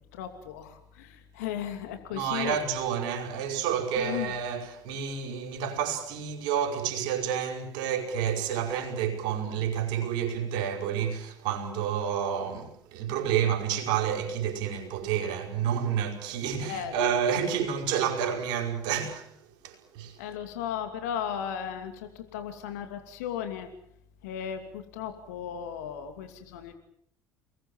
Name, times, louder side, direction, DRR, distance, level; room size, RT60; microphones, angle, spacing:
voice 1, 0.1-2.6 4.0-4.3 16.6-16.9 20.2-23.7 24.2-26.7, left 9 dB, 70° left, 2.8 m, -36 dB
voice 2, 2.1-19.3 19.6-20.2, right 8 dB, 60° right, 5.2 m, -29 dB
29.0 x 21.5 x 7.4 m
figure-of-eight pair, 60°, 9 cm